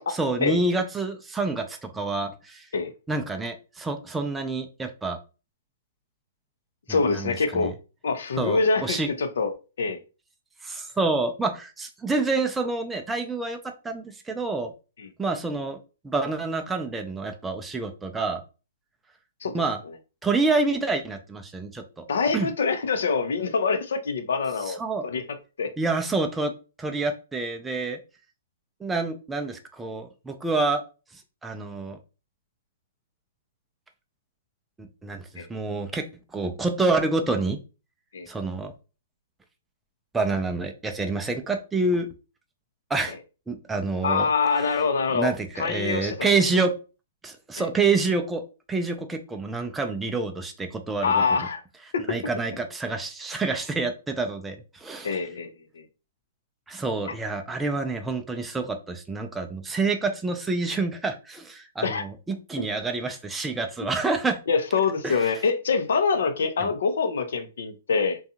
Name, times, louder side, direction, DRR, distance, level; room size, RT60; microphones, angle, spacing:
voice 1, 0.1-2.7 3.1-5.2 6.9-7.7 8.4-9.1 10.6-13.6 13.8-14.7 15.2-15.8 16.0-18.4 19.5-19.8 20.2-21.8 22.3-22.5 24.7-25.0 25.8-26.5 26.8-28.0 28.8-30.8 31.4-32.0 34.8-36.0 36.3-37.6 38.3-38.7 40.1-42.1 42.9-43.2 43.5-44.3 45.1-46.8 47.2-51.1 52.1-55.1 56.7-64.4 65.0-65.2 66.6-66.7, right 3 dB, 10° right, 0.4 m, -27 dB
voice 2, 6.9-7.7 8.0-9.5 9.8-10.0 15.0-15.1 19.4-20.0 22.1-25.7 35.4-35.5 38.1-38.3 44.0-46.3 47.6-47.7 51.0-51.6 51.9-52.2 55.0-55.8 61.8-62.0 64.5-68.2, left 5 dB, 75° left, 0.6 m, -25 dB
2.6 x 2.3 x 2.7 m
hypercardioid pair, 140°, 0 cm